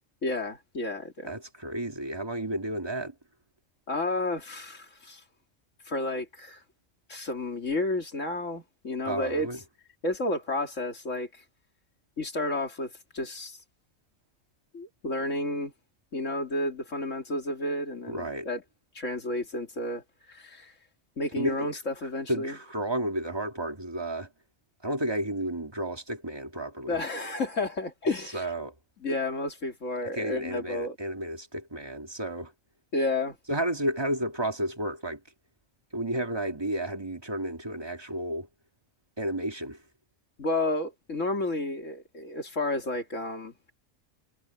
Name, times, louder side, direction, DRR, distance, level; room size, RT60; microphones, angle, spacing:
voice 1, 0.2-1.3 3.9-5.2 5.9-6.6 7.1-9.5 10.0-11.3 12.2-13.6 14.7-15.7 16.1-18.6 18.9-20.0 20.3-20.7 21.2-22.6 26.9-28.4 29.0-30.9 32.9-33.4 40.4-43.5, left 2 dB, 80° left, 3.3 m, -31 dB
voice 2, 1.2-3.1 9.1-9.6 18.1-18.5 21.4-21.8 22.3-24.3 24.8-27.0 28.3-28.7 30.1-32.5 33.5-35.2 35.9-38.5 39.2-39.8, right 1 dB, 20° right, 1.9 m, -32 dB
omnidirectional pair, 1.3 m